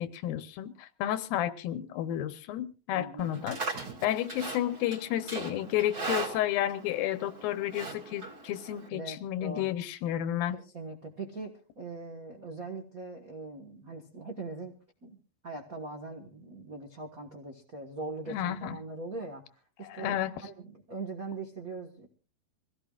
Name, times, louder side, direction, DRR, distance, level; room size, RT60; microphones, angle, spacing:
voice 1, 0.0-10.6 18.3-18.8 19.8-20.3, left 12 dB, 90° left, 2.7 m, -32 dB
voice 2, 2.9-3.4 8.9-9.7 10.5-22.1, right 3 dB, 65° right, 0.8 m, -41 dB
Livestock farm animals working animals, 3.2-8.9, right 3 dB, 30° right, 2.9 m, -39 dB
25.5 x 16.5 x 2.4 m
omnidirectional pair, 4.1 m